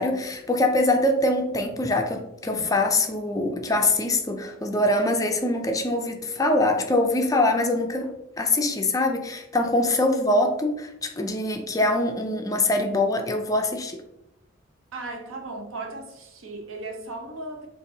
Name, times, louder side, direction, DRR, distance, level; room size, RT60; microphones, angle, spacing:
voice 1, 0.0-14.0, left 2 dB, 15° left, 0.4 m, -23 dB
voice 2, 14.9-17.7, right 2 dB, 85° right, 0.8 m, -36 dB
6.6 x 2.5 x 2.7 m
head